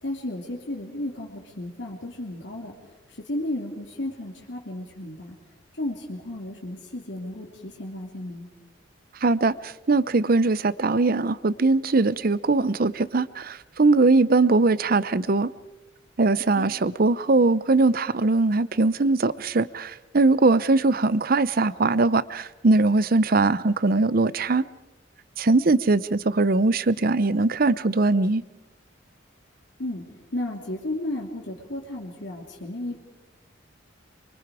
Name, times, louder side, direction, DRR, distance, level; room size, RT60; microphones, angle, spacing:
voice 1, 0.0-2.7 3.2-5.4 5.8-8.5 16.6-16.7 29.8-30.0 30.3-33.0, left 1 dB, 65° left, -1 dB, 2.9 m, -33 dB
voice 2, 9.2-15.5 16.2-24.6 25.4-28.4, right 3 dB, 50° right, 18 dB, 0.7 m, -21 dB
24.5 x 24.5 x 4.8 m, 1.0 s
head